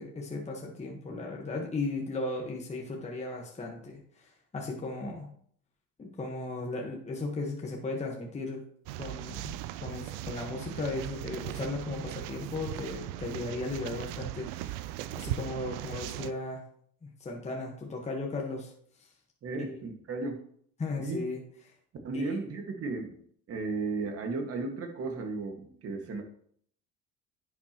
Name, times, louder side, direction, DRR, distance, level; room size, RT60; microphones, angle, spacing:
voice 1, 0.0-5.3 6.0-8.6 9.0-16.6 17.0-18.7 20.8-21.4 22.1-22.3, left 3 dB, 20° left, 0 dB, 1.4 m, -36 dB
sound 1, 8.9-16.3, right 14 dB, 85° right, 0.5 m, -38 dB
voice 2, 19.4-20.4 21.0-21.2 22.0-23.2 23.5-26.2, right 3 dB, 45° right, 4 dB, 1.8 m, -34 dB
10.5 x 7.3 x 3.0 m, 0.62 s
cardioid pair, 115°, 32 cm